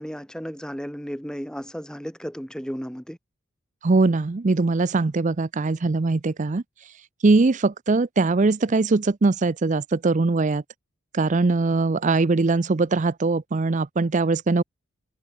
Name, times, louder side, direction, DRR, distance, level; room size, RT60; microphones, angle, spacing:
voice 1, 0.0-3.2, equal, 5° left, 2.6 m, -34 dB
voice 2, 3.8-6.6 7.2-10.6 11.1-14.6, right 3 dB, 35° right, 0.5 m, -21 dB
head